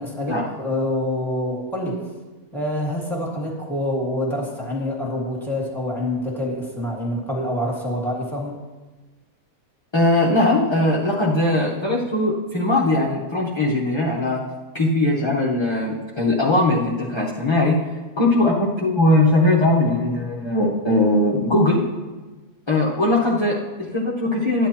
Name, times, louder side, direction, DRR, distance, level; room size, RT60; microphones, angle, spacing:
voice 1, 0.0-2.1 2.5-8.6, left 1 dB, ahead, -3 dB, 1.9 m, -26 dB
voice 2, 9.9-14.4 14.7-17.8 18.2-21.8 22.7-24.7, left 2 dB, 25° left, -6 dB, 0.7 m, -20 dB
12.5 x 9.7 x 2.9 m, 1.3 s
omnidirectional pair, 1.7 m